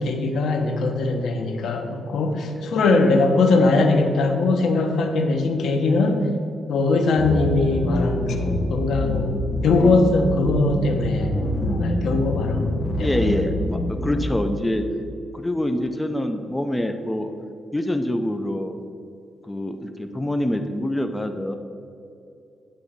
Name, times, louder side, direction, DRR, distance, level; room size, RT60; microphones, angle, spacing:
voice 1, 0.0-6.3 6.7-11.3 11.7-13.3, left 3 dB, 80° left, 5 dB, 0.9 m, -21 dB
voice 2, 2.4-3.0 13.0-14.8 15.3-17.3 17.7-18.8 19.4-21.6, left 1 dB, 10° left, 6 dB, 0.5 m, -26 dB
sound 1, 7.2-14.3, left 1 dB, 40° left, 1.1 m, -26 dB
9.3 x 3.9 x 7.0 m, 2.5 s
cardioid pair, 125°, 0 cm